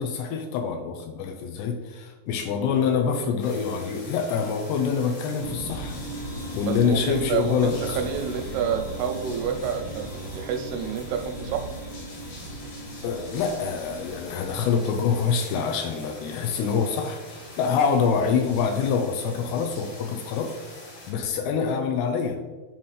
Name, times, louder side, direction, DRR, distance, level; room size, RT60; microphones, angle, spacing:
voice 1, 0.0-6.0 6.5-8.0 13.0-20.5 21.1-22.4, left 6 dB, 85° left, 4 dB, 2.6 m, -25 dB
sound 1, 3.4-21.1, left 1 dB, 65° left, 3.6 m, -44 dB
sound 2, 5.4-14.8, right 1 dB, 45° left, 1.4 m, -37 dB
voice 2, 6.6-11.7, right 7 dB, 85° right, 5 dB, 2.6 m, -29 dB
9.2 x 4.3 x 3.2 m, 1.2 s
omnidirectional pair, 4.7 m